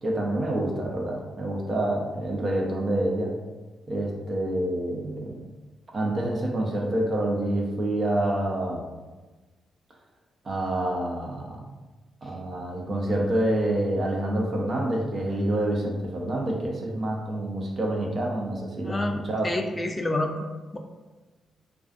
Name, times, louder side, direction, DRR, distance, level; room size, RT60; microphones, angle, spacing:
voice 1, 0.0-3.3 3.9-5.4 5.9-8.8 10.4-11.6 12.2-19.5, right 1 dB, 50° right, -1 dB, 0.6 m, -27 dB
voice 2, 19.4-20.5 20.7-20.8, left 1 dB, 30° left, 4 dB, 0.3 m, -27 dB
2.4 x 2.3 x 2.4 m, 1.2 s
supercardioid pair, 45°, 0 cm